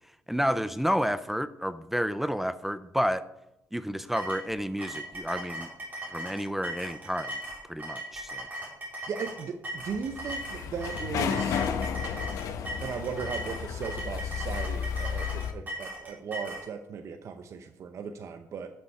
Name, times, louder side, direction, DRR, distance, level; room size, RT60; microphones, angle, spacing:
voice 1, 0.3-3.2 3.7-5.7 6.1-7.3 7.7-8.4, equal, 5° right, 13 dB, 0.4 m, -30 dB
sound 1, 4.1-16.7, right 1 dB, 30° right, 4.3 m, -39 dB
voice 2, 9.1-11.6 12.8-18.7, right 6 dB, 55° right, 7 dB, 0.8 m, -37 dB
sound 2, 9.9-15.5, left 7 dB, 70° left, 1.0 m, -33 dB
11.5 x 6.9 x 4.9 m, 0.88 s
cardioid pair, 110°, 6 cm